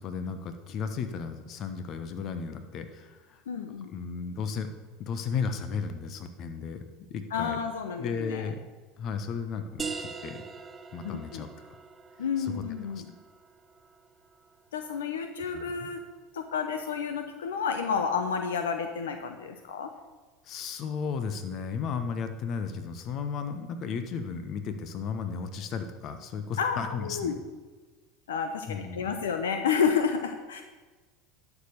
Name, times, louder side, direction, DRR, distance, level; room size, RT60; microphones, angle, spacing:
voice 1, 0.0-3.4 3.9-4.7 5.0-6.8 7.1-7.6 8.0-8.6 9.0-10.4 10.9-11.5 12.4-12.6 12.9-13.0 15.5-15.9 20.4-27.3 28.7-29.1, left 6 dB, 50° left, 8 dB, 1.1 m, -34 dB
voice 2, 3.5-3.9 7.3-8.5 11.0-11.4 12.2-13.1 14.7-16.0 16.3-19.9 26.6-27.4 28.3-30.6, left 6 dB, 85° left, 7 dB, 0.7 m, -30 dB
sound 1, 9.8-15.1, right 5 dB, 25° right, 0.7 m, -42 dB
11.5 x 5.0 x 6.5 m, 1.3 s
hypercardioid pair, 80°, 0 cm